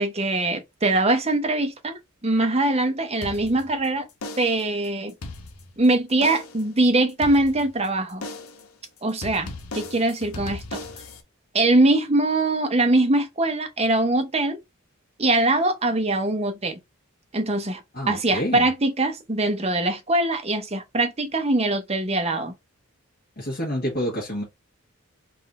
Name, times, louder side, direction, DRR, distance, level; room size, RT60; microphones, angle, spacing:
voice 1, 0.0-4.1 4.4-5.1 5.8-8.2 9.0-9.5 9.7-10.8 11.5-14.6 15.2-16.8 17.3-17.8 18.1-22.5, right 2 dB, 30° right, 0.8 m, -22 dB
sound 1, 3.2-3.8 4.2-4.7 5.1-5.8 6.2-6.7 7.2-7.8 8.2-8.7 9.2-11.2, left 2 dB, 80° left, 1.0 m, -37 dB
voice 2, 17.9-18.7 23.4-24.4, equal, 45° left, 1.5 m, -28 dB
4.0 x 2.6 x 4.1 m
head